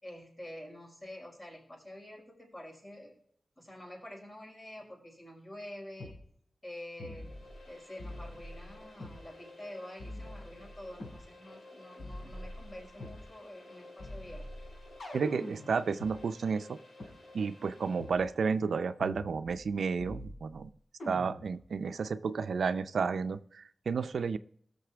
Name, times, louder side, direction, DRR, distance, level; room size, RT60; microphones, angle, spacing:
voice 1, 0.0-3.1 3.6-6.2 6.6-7.3 7.7-14.5, left 1 dB, 35° left, -2 dB, 5.2 m, -47 dB
sound 1, 6.0-6.2 7.0-7.7 8.0-9.2 10.0-11.2 12.0-13.2 14.0-16.1 17.0-17.1 18.0-18.2 19.0-19.7 20.0-20.6 21.0-21.6, left 1 dB, 70° left, 4.4 m, -44 dB
sound 2, 6.9-18.5, left 2 dB, 85° left, 2.8 m, -54 dB
voice 2, 15.1-16.8 17.3-20.7 21.1-24.4, right 5 dB, 90° right, 12 dB, 0.5 m, -32 dB
18.5 x 6.7 x 3.4 m, 0.64 s
wide cardioid pair, 80°, 0 cm